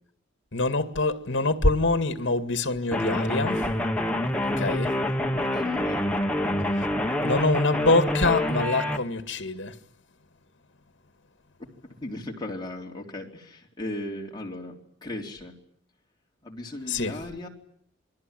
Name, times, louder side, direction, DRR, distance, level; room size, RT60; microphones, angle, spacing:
voice 1, 0.5-3.7 4.4-4.9 6.7-6.9 7.2-9.8 16.9-17.2, left 2 dB, 70° left, 2.1 m, -25 dB
sound 1, 2.9-9.0, left 1 dB, 5° left, 1.5 m, -26 dB
voice 2, 5.3-6.1 12.0-15.5 16.4-17.5, left 1 dB, 20° left, 3.6 m, -37 dB
27.5 x 21.5 x 9.1 m
head